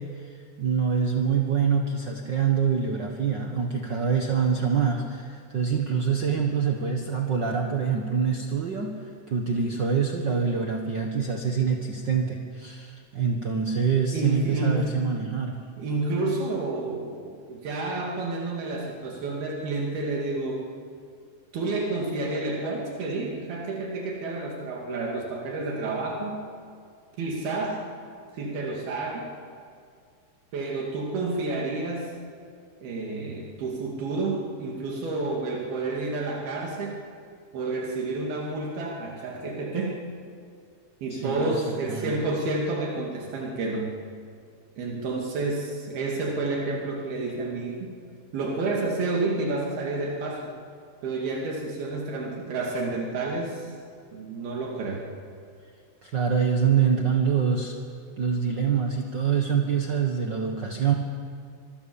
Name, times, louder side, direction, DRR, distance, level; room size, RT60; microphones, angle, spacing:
voice 1, 0.0-9.0 9.3-15.6 41.1-41.6 41.9-42.2 56.0-57.8 58.2-60.9, right 6 dB, 60° right, 2 dB, 1.1 m, -25 dB
voice 2, 14.1-15.1 15.8-20.7 21.5-26.4 27.2-27.8 28.3-29.3 30.5-32.1 32.8-36.9 37.5-40.0 41.0-43.9 44.8-47.9 48.3-50.5 51.0-53.8 54.1-55.1, right 2 dB, 80° right, -2 dB, 4.5 m, -30 dB
25.0 x 24.0 x 7.2 m, 2.2 s
omnidirectional pair, 4.3 m